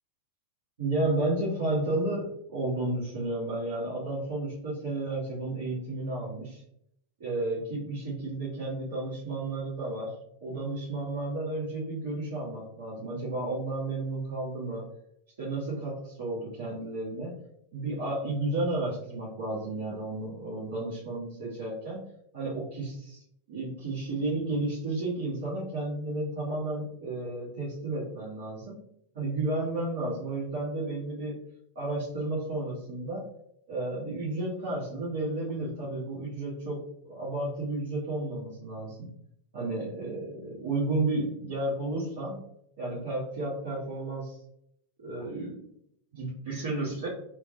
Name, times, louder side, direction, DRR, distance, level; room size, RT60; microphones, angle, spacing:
voice 1, 0.8-6.6 7.2-10.1 10.4-14.9 15.4-17.3 17.7-22.1 22.3-23.2 23.5-28.8 29.1-31.4 31.7-33.3 33.7-39.1 39.5-42.4 42.8-44.4 45.0-45.5 46.1-47.1, right 2 dB, 60° right, -8 dB, 1.4 m, -32 dB
3.3 x 2.1 x 3.7 m, 0.75 s
figure-of-eight pair, 90°, 0 cm